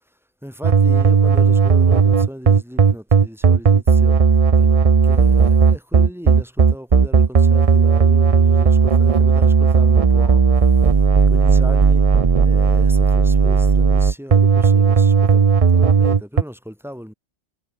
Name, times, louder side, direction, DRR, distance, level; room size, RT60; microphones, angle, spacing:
voice 1, 0.4-12.1 12.4-17.1, equal, ahead, 6.4 m, -37 dB
sound 1, 0.6-16.4, right 6 dB, 35° right, 0.7 m, -14 dB
omnidirectional pair, 1.3 m